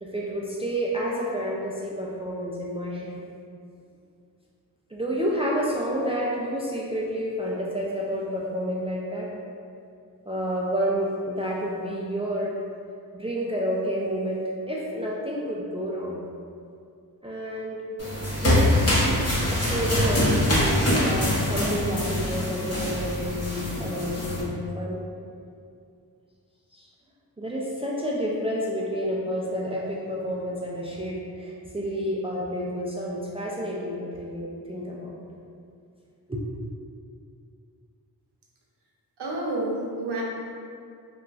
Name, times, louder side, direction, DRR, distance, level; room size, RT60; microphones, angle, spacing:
voice 1, 0.0-3.2 4.9-9.3 10.3-12.6 13.1-16.2 17.2-17.8 18.4-25.0 26.7-26.9 27.4-35.2 36.3-36.5, equal, 15° right, -4 dB, 0.3 m, -30 dB
sound 1, 18.0-24.4, left 1 dB, 40° left, 0.9 m, -24 dB
voice 2, 39.2-40.2, right 2 dB, 80° right, -3 dB, 0.6 m, -29 dB
2.9 x 2.4 x 2.3 m, 2.4 s
cardioid pair, 45°, 41 cm